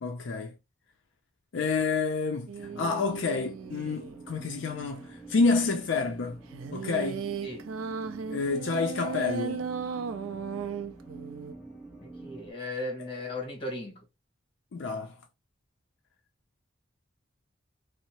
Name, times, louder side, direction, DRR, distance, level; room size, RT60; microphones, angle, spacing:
voice 1, 0.0-0.5 1.5-6.4 6.7-7.2 8.3-9.6 14.7-15.1, left 4 dB, 70° left, 0.4 m, -29 dB
sound 1, 2.5-4.2 6.5-11.5, right 6 dB, 90° right, 0.3 m, -36 dB
sound 2, 2.6-12.5, right 2 dB, 5° right, 0.7 m, -47 dB
voice 2, 12.0-14.0, left 2 dB, 25° left, 1.1 m, -36 dB
2.7 x 2.0 x 2.8 m
head